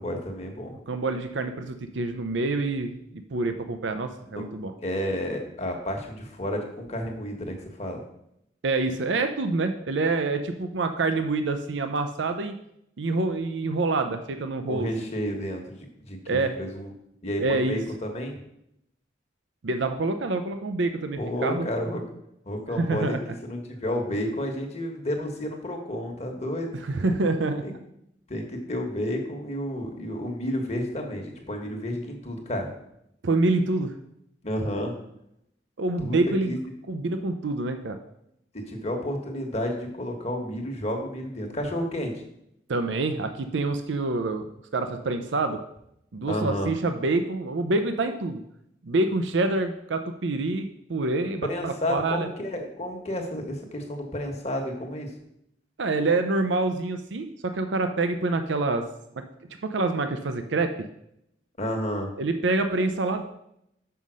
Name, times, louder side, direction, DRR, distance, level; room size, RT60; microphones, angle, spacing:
voice 1, 0.0-0.7 4.3-4.4 4.8-8.0 14.7-16.9 17.2-18.4 21.2-22.0 22.4-23.2 23.4-26.7 27.6-27.7 28.3-32.7 34.4-34.9 36.0-36.2 36.5-36.6 38.5-42.1 46.3-46.7 51.4-55.1 61.6-62.1, equal, 35° left, 3 dB, 1.3 m, -31 dB
voice 2, 0.9-4.7 8.6-12.6 13.0-14.9 16.3-16.6 17.4-17.8 19.6-21.7 22.8-23.2 26.7-27.6 33.2-33.9 35.8-36.6 36.9-38.0 42.7-44.5 44.7-45.6 46.1-48.4 48.8-52.3 55.8-58.9 59.2-59.3 59.6-60.7 62.2-63.2, right 3 dB, 80° right, 7 dB, 0.6 m, -26 dB
5.7 x 5.4 x 6.2 m, 0.77 s
head